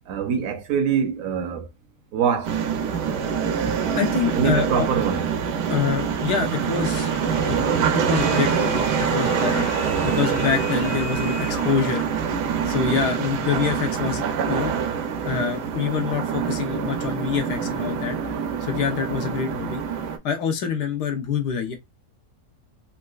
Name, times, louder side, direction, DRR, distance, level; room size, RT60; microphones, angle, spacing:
voice 1, 0.1-1.7 2.1-2.6 4.3-5.3, right 7 dB, 70° right, 0.8 m, -24 dB
sound 1, 2.4-20.2, right 7 dB, 85° right, 1.2 m, -25 dB
voice 2, 3.6-4.9 5.7-7.1 7.4-7.7 7.9-9.7 10.0-12.0 12.7-14.7 15.2-18.2 18.6-19.8 20.2-21.8, left 7 dB, 85° left, 1.3 m, -26 dB
sound 2, 6.9-12.0, left 7 dB, 65° left, 0.8 m, -38 dB
4.2 x 2.4 x 2.3 m
omnidirectional pair, 1.7 m